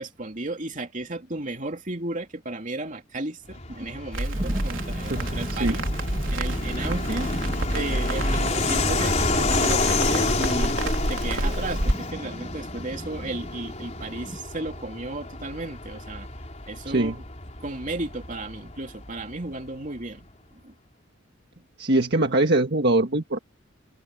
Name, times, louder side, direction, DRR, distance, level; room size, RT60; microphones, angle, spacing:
voice 1, 0.0-5.8 6.3-7.3 7.7-16.3 16.7-17.2 17.6-20.3 20.6-20.7, right 2 dB, 40° right, 2.9 m, -34 dB
Fixed-wing aircraft airplane, 3.5-19.7, left 3 dB, 35° left, 4.3 m, -30 dB
Crackle, 4.1-11.9, right 1 dB, 80° right, 3.6 m, -28 dB
sound 1, 4.3-14.4, right 1 dB, 25° right, 1.7 m, -38 dB
voice 2, 5.1-5.8 16.9-17.2 21.8-23.4, right 2 dB, 55° right, 1.6 m, -23 dB
head